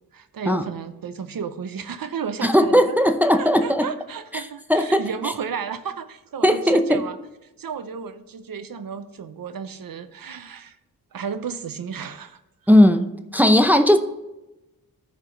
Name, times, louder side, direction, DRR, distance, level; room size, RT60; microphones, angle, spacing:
voice 1, 0.1-7.2 7.6-10.8 11.1-12.4, right 6 dB, 75° right, 11 dB, 0.8 m, -33 dB
voice 2, 2.4-3.9 4.7-5.0 6.4-7.0 12.7-13.1 13.3-14.0, equal, 5° right, 7 dB, 0.7 m, -17 dB
14.0 x 4.8 x 3.8 m, 0.97 s
wide cardioid pair, 85°, 35 cm